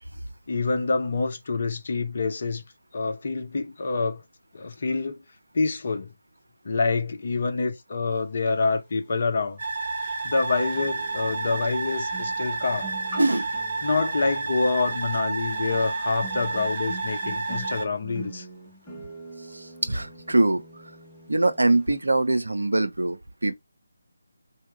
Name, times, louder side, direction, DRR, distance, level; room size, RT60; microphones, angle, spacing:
voice 1, 0.5-2.6 2.9-4.2 4.5-5.2 5.5-6.1 6.6-9.6 10.2-12.9 13.8-18.5, left 3 dB, 45° left, 0.9 m, -26 dB
sound 1, 9.4-9.5 10.7-21.8 22.1-22.4, right 1 dB, 5° left, 2.0 m, -45 dB
sound 2, 9.6-17.8, right 3 dB, 35° right, 1.6 m, -30 dB
voice 2, 13.2-13.5 19.5-20.6 21.3-23.5, right 2 dB, 70° right, 0.8 m, -23 dB
4.5 x 2.8 x 3.2 m
figure-of-eight pair, 155°, 0 cm